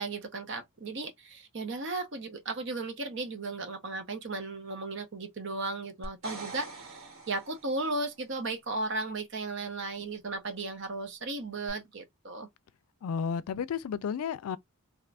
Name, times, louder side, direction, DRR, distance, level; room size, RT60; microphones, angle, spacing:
voice 1, 0.0-12.5, right 3 dB, 55° right, 0.8 m, -35 dB
sound 1, 6.0-8.0 11.7-11.8, right 2 dB, 75° right, 1.8 m, -44 dB
voice 2, 13.0-14.6, left 6 dB, 80° left, 0.4 m, -32 dB
2.8 x 2.5 x 3.3 m
head